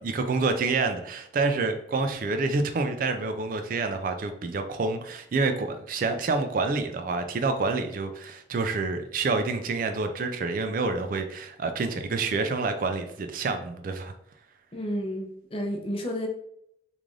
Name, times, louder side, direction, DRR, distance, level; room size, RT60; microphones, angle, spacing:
voice 1, 0.0-14.1, right 3 dB, 50° right, 7 dB, 0.3 m, -28 dB
voice 2, 14.7-16.3, equal, 30° left, 2 dB, 0.6 m, -31 dB
3.2 x 2.5 x 3.6 m, 0.72 s
head